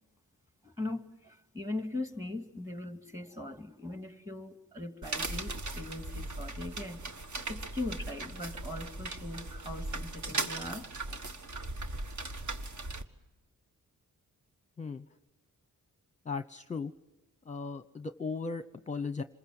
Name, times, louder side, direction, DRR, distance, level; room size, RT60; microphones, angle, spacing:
voice 1, 0.6-7.0 7.5-11.2, left 2 dB, 10° right, 7 dB, 2.4 m, -40 dB
sound 1, 5.0-13.0, right 2 dB, 55° right, 1.7 m, -38 dB
voice 2, 16.2-16.9 17.5-19.2, left 4 dB, 20° left, 11 dB, 0.8 m, -37 dB
27.5 x 21.5 x 7.8 m, 1.0 s
wide cardioid pair, 105°, 35 cm